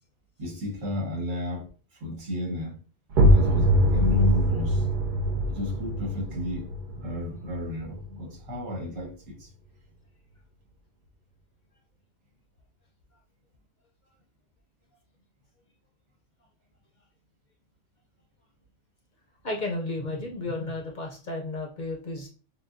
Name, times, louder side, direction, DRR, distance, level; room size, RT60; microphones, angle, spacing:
voice 1, 0.4-1.7 2.0-2.8 3.3-4.9 5.5-9.5, left 1 dB, 85° right, 1.8 m, -33 dB
sound 1, 3.1-8.7, equal, 50° right, 0.6 m, -23 dB
voice 2, 19.4-22.3, left 2 dB, 45° left, 0.7 m, -33 dB
6.3 x 2.3 x 2.6 m
omnidirectional pair, 1.3 m